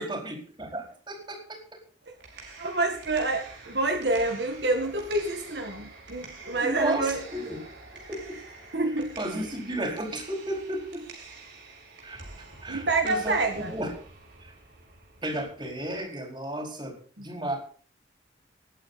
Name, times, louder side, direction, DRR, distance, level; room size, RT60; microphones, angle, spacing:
voice 1, 0.0-1.8 6.6-7.6 8.0-8.4 9.2-11.0 12.0-13.3 13.7-13.9 14.4-14.5 15.2-17.6, right 1 dB, 25° right, 2 dB, 4.7 m, -33 dB
sound 1, 2.0-16.0, right 3 dB, 85° right, 5.7 m, -47 dB
voice 2, 2.6-7.2 8.7-9.2 12.7-13.7 17.2-17.3, right 2 dB, 70° right, 5 dB, 1.7 m, -27 dB
20.0 x 9.0 x 4.1 m, 0.44 s
head